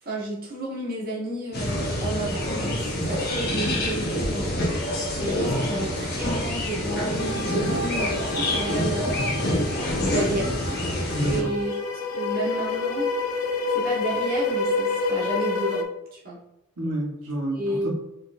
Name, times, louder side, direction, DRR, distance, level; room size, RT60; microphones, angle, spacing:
voice 1, 0.0-4.6 5.2-9.2 10.0-10.6 11.3-11.7 12.1-13.1 13.7-15.8 16.1-16.4 17.5-17.9, right 2 dB, 45° right, -6 dB, 1.4 m, -31 dB
sound 1, 1.5-11.4, left 1 dB, 45° left, 1.2 m, -26 dB
sound 2, 7.2-15.8, left 3 dB, 75° left, 0.6 m, -29 dB
voice 2, 11.1-11.5 16.8-17.9, right 1 dB, 85° right, -4 dB, 1.2 m, -29 dB
4.8 x 4.1 x 2.6 m, 0.88 s
head